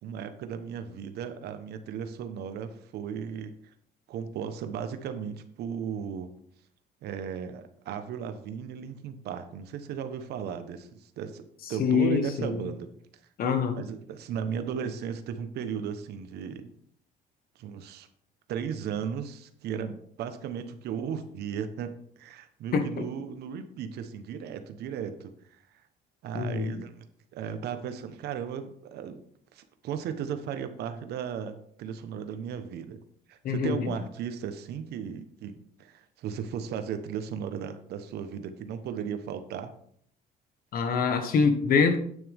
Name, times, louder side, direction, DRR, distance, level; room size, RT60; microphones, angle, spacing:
voice 1, 0.0-3.5 4.1-6.3 7.0-11.4 11.7-12.9 13.8-16.7 17.6-18.1 18.5-25.3 26.2-27.1 27.3-29.2 29.5-33.0 33.3-35.5 35.8-39.7, right 7 dB, 75° right, 9 dB, 1.2 m, -36 dB
voice 2, 11.8-12.7 13.4-13.8 22.7-23.0 26.3-26.8 33.4-33.9 40.7-42.0, left 6 dB, 60° left, 8 dB, 1.5 m, -25 dB
9.5 x 9.4 x 3.6 m, 0.64 s
cardioid pair, 110°, 17 cm